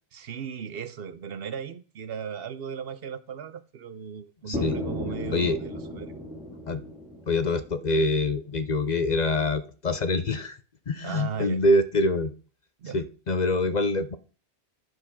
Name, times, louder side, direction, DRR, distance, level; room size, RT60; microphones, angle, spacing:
voice 1, 0.1-6.1 11.0-11.6 12.8-13.0, right 7 dB, 65° right, 0.9 m, -37 dB
sound 1, 4.5-8.4, equal, 5° right, 2.7 m, -35 dB
voice 2, 7.3-10.6 10.9-12.3 12.9-14.2, left 2 dB, 50° left, 0.7 m, -25 dB
10.5 x 4.6 x 5.8 m
omnidirectional pair, 1.1 m